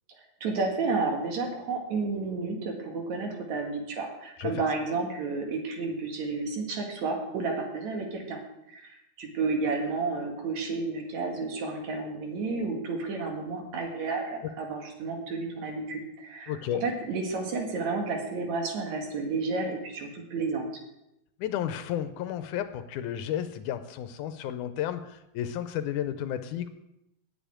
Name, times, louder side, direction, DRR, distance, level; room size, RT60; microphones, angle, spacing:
voice 1, 0.4-8.4 8.7-8.9 9.2-16.5 16.8-20.7, right 3 dB, 70° right, 2 dB, 3.0 m, -31 dB
voice 2, 16.5-16.8 21.4-26.7, left 10 dB, 85° left, 10 dB, 2.1 m, -32 dB
9.1 x 7.1 x 8.9 m, 0.86 s
omnidirectional pair, 3.5 m